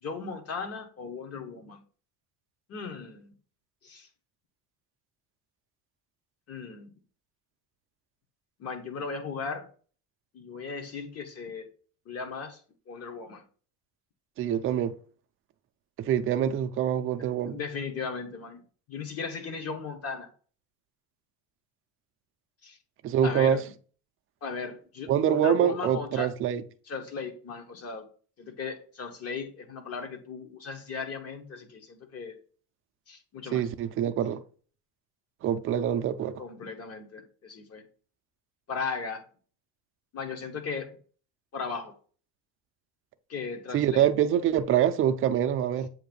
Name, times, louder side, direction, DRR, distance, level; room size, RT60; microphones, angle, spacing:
voice 1, 0.0-1.8 2.7-3.3 3.8-4.1 6.5-6.9 8.6-9.7 10.3-11.7 12.1-12.6 12.9-13.4 17.5-18.6 18.9-20.3 22.6-22.8 23.2-23.6 24.4-26.3 26.9-28.0 28.4-32.3 33.1-33.7 36.4-37.8 38.7-39.2 40.1-41.0 41.5-41.9 43.3-44.1, left 5 dB, 40° left, 1.3 m, -37 dB
voice 2, 14.4-14.9 16.0-17.6 23.0-23.6 25.1-26.6 33.5-34.4 35.4-36.4 43.7-45.9, right 9 dB, 35° right, 0.4 m, -25 dB
7.7 x 2.6 x 5.2 m
cardioid pair, 145°, 39 cm